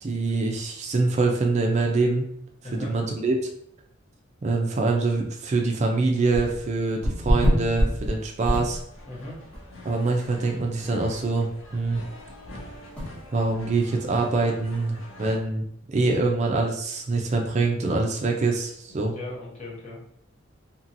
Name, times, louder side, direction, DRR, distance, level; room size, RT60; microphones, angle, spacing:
voice 1, 0.0-2.3 2.7-3.4 4.4-8.8 9.8-11.5 11.7-12.0 13.3-19.1, right 3 dB, 35° right, 1 dB, 0.4 m, -24 dB
sound 1, 6.3-6.7 7.0-9.1 9.5-9.6 10.2-10.3 10.5-10.6 11.1-11.2 13.0-13.1, equal, 5° left, 0.8 m, -25 dB
sound 2, 8.9-15.4, left 1 dB, 80° left, 0.6 m, -45 dB
voice 2, 9.0-9.4 18.9-20.1, left 2 dB, 35° left, -4 dB, 0.9 m, -38 dB
2.9 x 2.7 x 2.6 m, 0.70 s
head